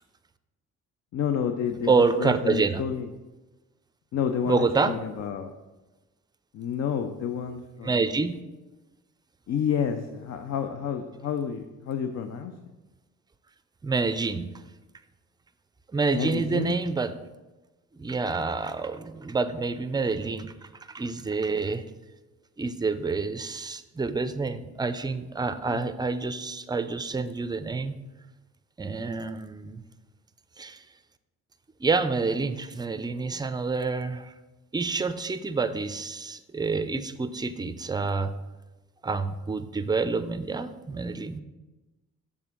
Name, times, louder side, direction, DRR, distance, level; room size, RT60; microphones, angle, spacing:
voice 1, 1.1-3.1 4.1-5.5 6.5-8.0 9.5-12.5 16.1-16.8 25.7-25.9, left 7 dB, 60° left, 6 dB, 0.6 m, -30 dB
voice 2, 1.9-2.8 4.5-4.9 7.8-8.4 13.8-14.6 15.9-17.1 17.9-20.5 20.9-21.8 22.6-27.9 28.8-29.8 30.6-30.8 31.8-34.3 34.7-38.3 39.0-41.4, right 4 dB, 15° right, 11 dB, 0.4 m, -28 dB
7.1 x 3.6 x 5.9 m, 1.1 s
cardioid pair, 90°, 30 cm